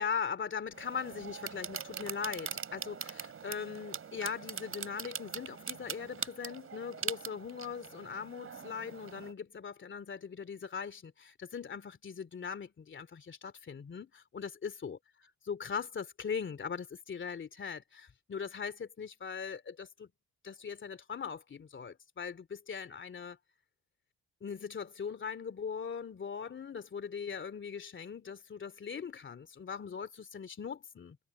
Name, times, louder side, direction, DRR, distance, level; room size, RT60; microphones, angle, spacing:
voice 1, 0.0-15.0 15.5-20.1 20.4-23.4 24.4-31.2, left 6 dB, 40° left, 2.7 m, -40 dB
sound 1, 0.7-9.3, right 7 dB, 45° right, 4.4 m, -42 dB
cardioid pair, 90°, 30 cm